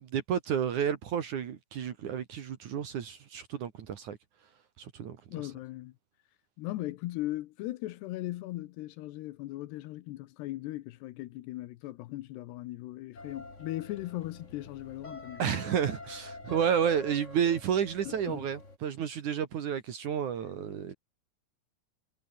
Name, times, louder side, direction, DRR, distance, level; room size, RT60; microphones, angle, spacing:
voice 1, 0.0-4.2 4.8-5.2 15.4-20.9, right 8 dB, 55° right, 2.5 m, -31 dB
voice 2, 5.3-5.9 6.6-15.6 18.1-18.5, left 17 dB, 75° left, 2.9 m, -38 dB
sound 1, 13.2-18.8, left 2 dB, 15° left, 4.0 m, -47 dB
omnidirectional pair, 5.0 m